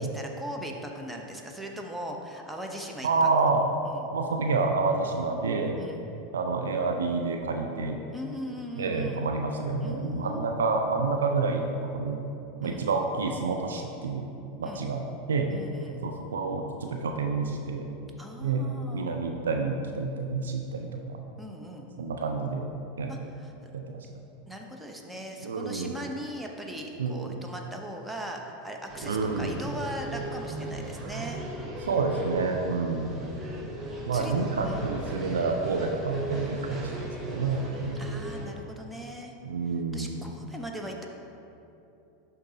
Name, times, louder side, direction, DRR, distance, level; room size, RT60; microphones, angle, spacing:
voice 1, 0.0-3.5 3.8-4.1 5.8-6.0 8.1-9.3 9.8-10.6 12.6-12.9 14.6-14.9 15.5-16.0 18.2-19.1 21.4-21.9 23.1-23.5 24.5-31.4 34.1-34.3 34.6-34.9 37.9-39.3 39.7-41.1, equal, 5° right, 1 dB, 0.8 m, -39 dB
voice 2, 3.0-3.6 4.1-5.8 6.3-8.0 8.8-12.2 12.6-14.3 14.6-15.0 15.3-15.5 16.0-17.9 18.4-18.7 18.9-21.2 22.0-22.7 23.0-23.1 23.7-24.1 25.4-25.9 27.0-27.4 29.0-29.5 31.9-33.3 34.1-38.0 39.4-40.3, right 4 dB, 80° right, 3 dB, 0.4 m, -28 dB
sound 1, 28.9-38.5, right 1 dB, 30° right, 1.1 m, -37 dB
11.0 x 3.9 x 2.8 m, 2.9 s
hypercardioid pair, 90°, 0 cm